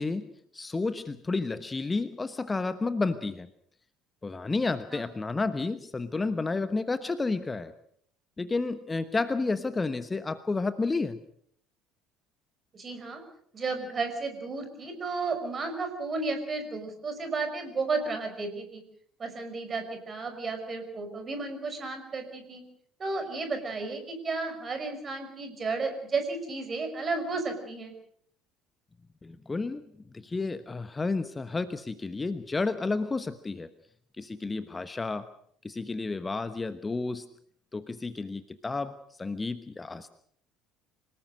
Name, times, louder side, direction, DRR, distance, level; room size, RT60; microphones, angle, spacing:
voice 1, 0.0-3.5 4.2-7.7 8.4-11.2 29.2-29.8 30.1-33.7 34.2-35.3 35.6-37.3 37.7-40.1, left 3 dB, 20° left, 13 dB, 1.1 m, -31 dB
voice 2, 12.7-13.2 13.5-18.8 19.2-22.6 23.0-27.9, right 3 dB, 30° right, 7 dB, 5.5 m, -33 dB
26.0 x 18.5 x 6.5 m, 0.65 s
figure-of-eight pair, 60°, 0 cm